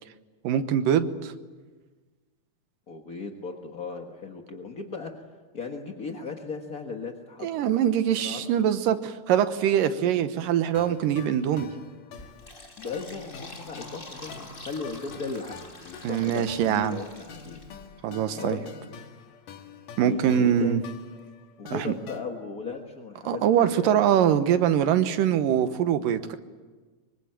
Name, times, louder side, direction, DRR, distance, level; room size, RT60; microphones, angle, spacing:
voice 1, 0.4-1.3 7.4-11.7 16.0-17.0 18.0-18.6 20.0-20.8 21.7-21.9 23.3-26.4, right 9 dB, 80° right, 10 dB, 2.8 m, -23 dB
voice 2, 2.9-5.1 5.5-7.5 8.1-8.4 12.8-17.6 18.4-18.6 20.0-20.9 21.6-24.1, left 4 dB, 45° left, 3 dB, 1.2 m, -37 dB
sound 1, 10.8-22.2, left 6 dB, 75° left, 3.3 m, -46 dB
Fill (with liquid), 12.2-17.9, left 2 dB, 20° left, 2.1 m, -46 dB
24.5 x 24.0 x 9.0 m, 1.3 s
omnidirectional pair, 3.9 m